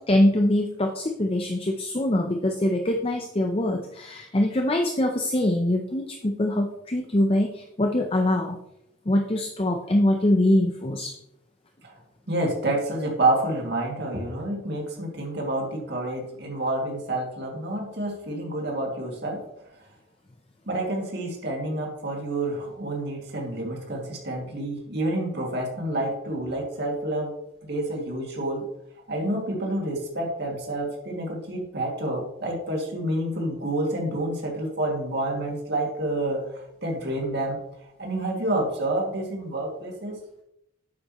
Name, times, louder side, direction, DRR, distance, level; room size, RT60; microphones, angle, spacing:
voice 1, 0.1-8.6 9.1-11.1, left 1 dB, 25° left, 3 dB, 0.6 m, -23 dB
voice 2, 12.3-19.4 20.7-27.3 27.7-28.7 29.1-36.4 36.8-37.6 38.0-40.2, right 1 dB, 50° right, 0 dB, 2.3 m, -28 dB
9.7 x 8.4 x 3.0 m, 0.82 s
head